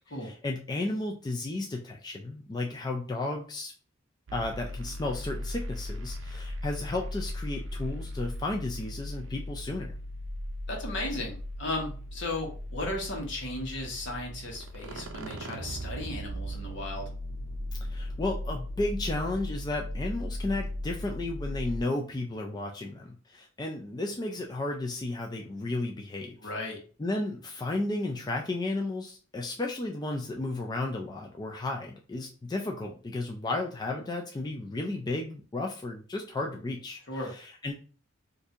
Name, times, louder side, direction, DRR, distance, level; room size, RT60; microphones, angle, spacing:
voice 1, 0.1-3.7 4.3-9.9 17.9-26.5 27.0-37.7, left 2 dB, 20° left, 1 dB, 0.4 m, -33 dB
sound 1, 4.3-21.8, left 1 dB, 65° right, 0.5 m, -37 dB
voice 2, 10.7-17.1 26.4-26.8 37.1-37.3, left 2 dB, 65° left, 0 dB, 1.1 m, -35 dB
4.3 x 2.6 x 2.5 m, 0.39 s
head